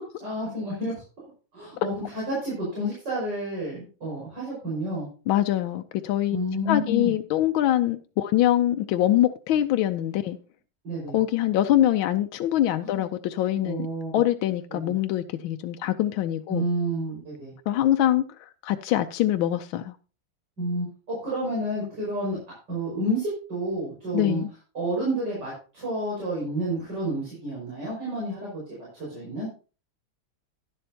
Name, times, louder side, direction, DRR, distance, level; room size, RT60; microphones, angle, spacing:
voice 1, 0.2-1.0 1.5-5.1 6.3-7.1 10.8-11.2 12.8-13.0 13.6-14.2 14.8-14.9 16.5-17.5 20.6-22.4 22.7-24.4 24.7-28.6 28.9-29.5, right 1 dB, 60° right, 5.9 m, -30 dB
voice 2, 5.3-6.4 6.7-10.4 11.1-13.9 14.1-16.6 17.7-18.2 18.6-19.9 24.1-24.5, left 12 dB, 85° left, 1.4 m, -24 dB
11.0 x 11.0 x 2.8 m
omnidirectional pair, 2.1 m